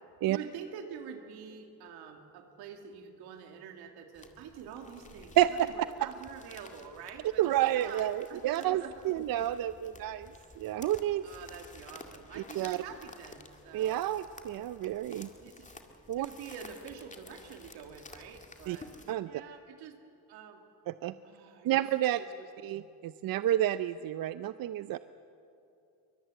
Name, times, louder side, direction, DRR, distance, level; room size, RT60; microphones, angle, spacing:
voice 1, 0.3-9.1 11.2-14.1 15.3-15.7 16.2-18.9 19.2-20.0 20.3-20.6 21.2-21.8 22.1-23.0, right 7 dB, 90° right, 5 dB, 2.3 m, -47 dB
Pas dans la neige, 4.1-19.1, left 2 dB, 20° left, 2.2 m, -53 dB
voice 2, 7.4-10.3 10.6-11.2 12.3-12.8 13.7-15.3 16.1-16.3 18.7-18.8 19.1-19.3 20.9-21.1 21.6-22.2 22.6-25.0, right 13 dB, 65° right, 13 dB, 0.6 m, -30 dB
23.5 x 21.0 x 7.7 m, 2.7 s
cardioid pair, 85°, 37 cm